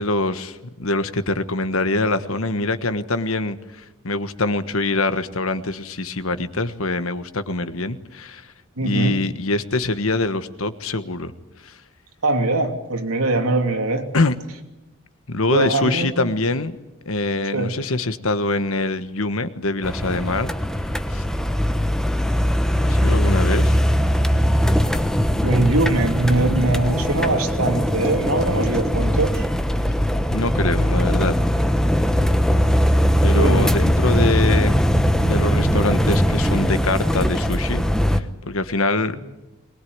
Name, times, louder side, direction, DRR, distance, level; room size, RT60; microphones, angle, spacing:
voice 1, 0.0-8.5 8.8-11.3 11.6-11.8 14.1-14.4 15.3-16.8 17.0-21.2 22.8-23.8 30.3-31.4 33.2-34.7 35.2-37.8 38.1-39.2, left 2 dB, 70° left, 11 dB, 1.4 m, -24 dB
voice 2, 8.8-9.2 12.2-14.1 15.5-16.1 17.5-17.7 25.4-29.5 33.3-33.7 39.1-39.2, right 2 dB, 85° right, 4 dB, 2.9 m, -21 dB
sound 1, 19.8-38.2, equal, 5° left, 1.1 m, -20 dB
22.0 x 20.5 x 9.6 m, 0.96 s
head